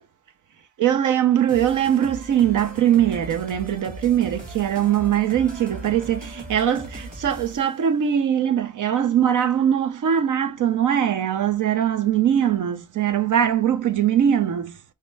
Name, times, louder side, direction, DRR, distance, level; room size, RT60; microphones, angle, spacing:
voice 1, 0.8-14.7, right 9 dB, 70° right, 0.7 m, -21 dB
sound 1, 1.5-7.8, right 1 dB, 25° right, 2.0 m, -39 dB
5.0 x 2.2 x 3.3 m
cardioid pair, 60°, 32 cm